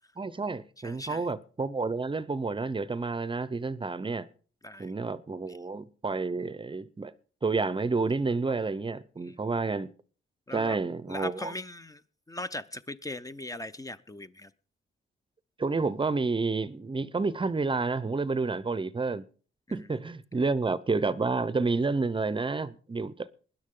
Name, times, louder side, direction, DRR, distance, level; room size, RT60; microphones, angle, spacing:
voice 1, 0.2-4.3 4.8-7.1 7.4-9.9 10.5-11.5 15.6-19.2 19.7-23.3, right 3 dB, 25° right, 0.7 m, -30 dB
voice 2, 0.8-1.3 4.6-4.9 5.5-5.6 9.2-9.3 10.5-10.8 11.1-12.0 12.3-14.5, left 2 dB, 15° left, 0.7 m, -39 dB
20.0 x 10.5 x 3.8 m
cardioid pair, 105°, 21 cm